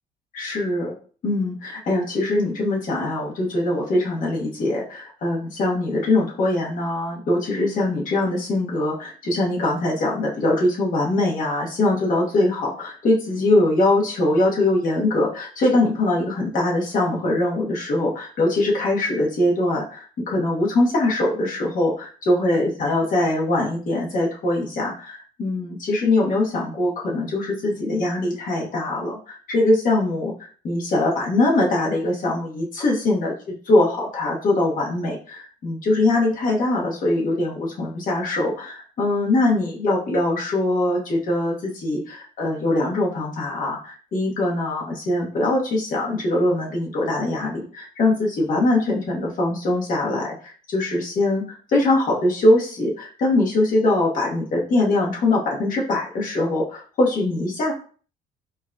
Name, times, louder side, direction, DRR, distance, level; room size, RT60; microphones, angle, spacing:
voice 1, 0.3-1.0 1.2-33.3 33.7-51.4 51.7-57.7, left 2 dB, 55° left, -3 dB, 1.3 m, -22 dB
4.5 x 2.7 x 2.3 m, 0.42 s
cardioid pair, 110°, 17 cm